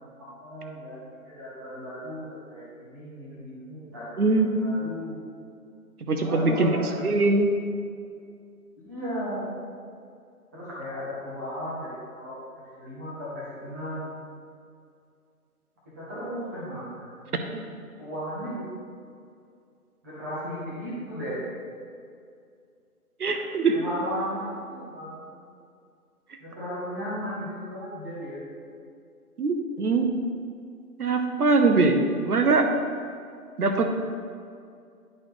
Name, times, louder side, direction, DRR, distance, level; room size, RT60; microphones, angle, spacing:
voice 1, 0.2-5.2 6.2-7.2 8.8-9.5 10.5-12.3 12.8-14.1 15.9-17.6 18.0-18.7 20.0-21.5 23.2-23.4 23.7-25.2 26.4-28.4, equal, 10° right, -9 dB, 0.8 m, -35 dB
voice 2, 4.2-4.7 6.1-7.5 23.2-23.8 29.4-30.1 31.0-32.7 33.6-33.9, right 3 dB, 80° right, 5 dB, 0.9 m, -22 dB
11.0 x 4.3 x 3.1 m, 2.3 s
figure-of-eight pair, 155°, 45 cm